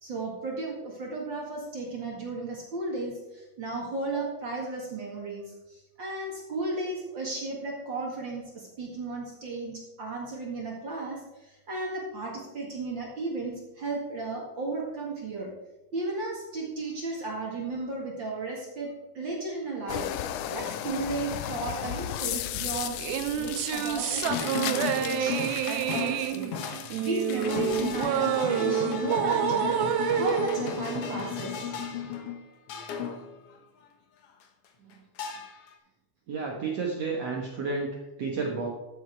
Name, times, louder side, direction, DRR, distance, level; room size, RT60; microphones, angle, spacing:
voice 1, 0.0-15.5 15.9-20.1 20.5-31.7, right 2 dB, 40° right, -2 dB, 2.0 m, -35 dB
sound 1, 19.9-28.1, left 11 dB, 80° left, 1.9 m, -36 dB
sound 2, 23.0-31.6, right 9 dB, 85° right, 2.5 m, -28 dB
sound 3, 24.0-33.4 35.2-35.7, left 7 dB, 65° left, 1.5 m, -35 dB
voice 2, 36.3-37.9 38.2-38.7, right 4 dB, 60° right, -2 dB, 2.0 m, -31 dB
13.0 x 7.3 x 4.6 m, 1.1 s
omnidirectional pair, 4.2 m